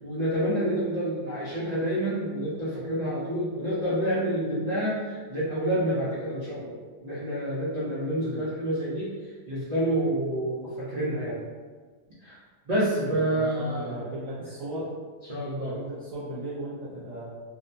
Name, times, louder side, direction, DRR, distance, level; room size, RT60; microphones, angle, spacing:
voice 1, 0.0-9.1 9.5-11.4 12.2-12.4 12.7-13.9 15.3-15.7, right 1 dB, 85° right, -10 dB, 0.3 m, -28 dB
voice 2, 13.1-14.9 15.6-17.3, right 1 dB, 60° right, -11 dB, 1.2 m, -37 dB
2.8 x 2.1 x 2.6 m, 1.5 s
omnidirectional pair, 1.6 m